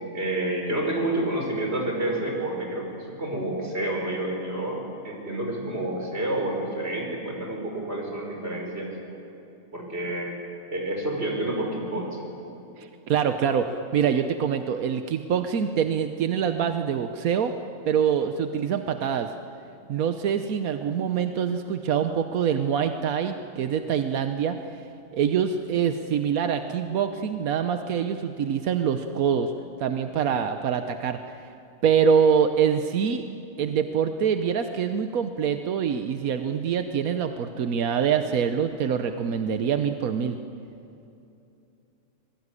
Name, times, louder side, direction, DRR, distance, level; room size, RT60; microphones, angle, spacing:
voice 1, 0.0-9.0 9.7-10.3 10.7-12.3, right 1 dB, 45° right, 0 dB, 5.9 m, -29 dB
voice 2, 12.8-17.5 17.9-19.3 19.9-24.6 25.1-29.5 29.8-31.5 31.8-33.2 33.6-40.4, right 7 dB, 90° right, 7 dB, 1.3 m, -25 dB
26.5 x 20.5 x 9.8 m, 2.8 s
omnidirectional pair, 1.5 m